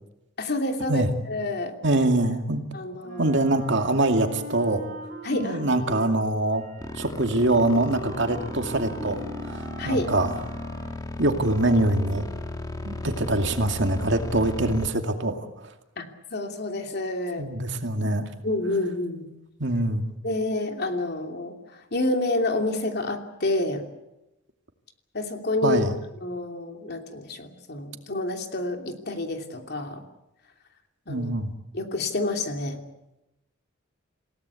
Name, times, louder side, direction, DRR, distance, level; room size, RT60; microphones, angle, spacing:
voice 1, 0.4-1.7 2.7-3.4 5.2-5.6 9.8-10.1 16.0-17.5 18.4-19.3 20.2-23.8 25.1-25.9 26.2-30.0 31.1-31.3 31.7-32.8, left 2 dB, 55° left, 4 dB, 2.9 m, -28 dB
voice 2, 1.8-2.7 3.2-4.8 5.4-6.6 7.0-10.4 11.2-12.2 12.8-15.4 17.4-18.2 19.6-20.2 25.6-25.9 31.1-31.5, right 2 dB, 60° right, 5 dB, 2.4 m, -24 dB
Wind instrument woodwind instrument, 3.0-11.2, equal, 45° right, 6.7 m, -41 dB
sound 1, 6.8-14.9, left 2 dB, 20° left, 1.8 m, -35 dB
28.5 x 17.0 x 8.4 m, 0.92 s
head